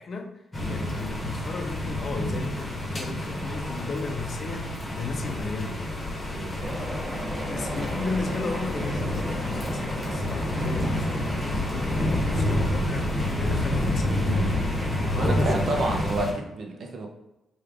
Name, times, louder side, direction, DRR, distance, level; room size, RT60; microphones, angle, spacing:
voice 1, 0.0-5.8 7.4-14.8 15.1-16.1, left 3 dB, 45° left, 0.4 m, -35 dB
sound 1, 0.5-16.3, left 1 dB, 20° left, 1.0 m, -29 dB
sound 2, 6.6-16.1, equal, 10° right, 0.8 m, -34 dB
voice 2, 15.2-17.1, right 2 dB, 55° right, 0.6 m, -29 dB
3.2 x 2.3 x 3.5 m
cardioid pair, 115°, 0 cm